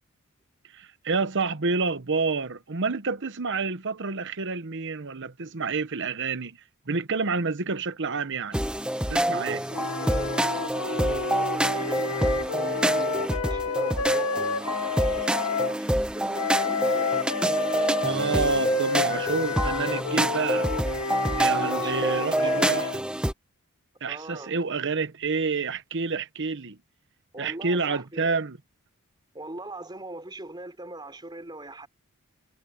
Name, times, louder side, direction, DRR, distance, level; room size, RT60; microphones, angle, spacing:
voice 1, 0.7-6.6 6.9-8.6 9.1-9.6 18.0-20.7 21.4-23.0 24.0-26.8 27.4-28.6, right 4 dB, 55° right, 1.0 m, -28 dB
sound 1, 8.5-23.3, right 1 dB, 5° right, 0.9 m, -27 dB
voice 2, 9.2-17.1 21.5-22.9 24.1-24.6 27.3-28.3 29.3-31.9, right 2 dB, 20° right, 3.7 m, -41 dB
sound 2, 9.7-15.8 16.3-23.0, left 5 dB, 85° left, 1.1 m, -30 dB
head